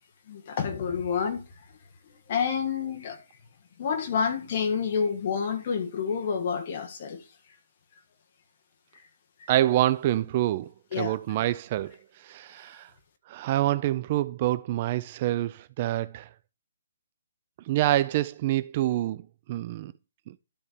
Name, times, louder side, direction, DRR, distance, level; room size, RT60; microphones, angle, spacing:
voice 1, 0.3-1.4 2.3-3.2 3.8-7.2 10.9-11.2, left 6 dB, 35° left, 1.5 m, -28 dB
voice 2, 9.5-10.7 11.0-11.9 12.3-12.9 13.3-16.3 17.7-19.2 19.5-19.9, right 14 dB, 30° right, 0.4 m, -26 dB
12.0 x 4.3 x 5.0 m
hypercardioid pair, 170°, 0 cm